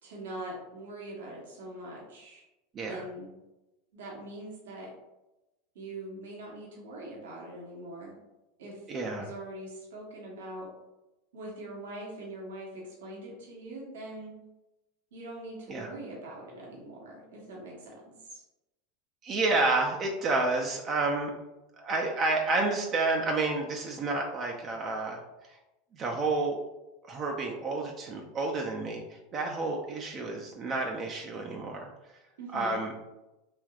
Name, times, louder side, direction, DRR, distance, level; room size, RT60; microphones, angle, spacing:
voice 1, 0.0-2.4 2.9-3.3 3.9-4.9 5.7-8.1 8.6-10.7 11.3-14.3 15.1-18.4 32.4-32.8, right 1 dB, 80° right, -3 dB, 0.9 m, -42 dB
voice 2, 8.9-9.3 15.7-15.9 19.2-21.3 21.8-25.2 25.9-26.6 27.1-31.9 32.5-32.9, right 3 dB, 40° right, 1 dB, 0.4 m, -30 dB
3.3 x 2.6 x 2.4 m, 0.99 s
hypercardioid pair, 95°, 0 cm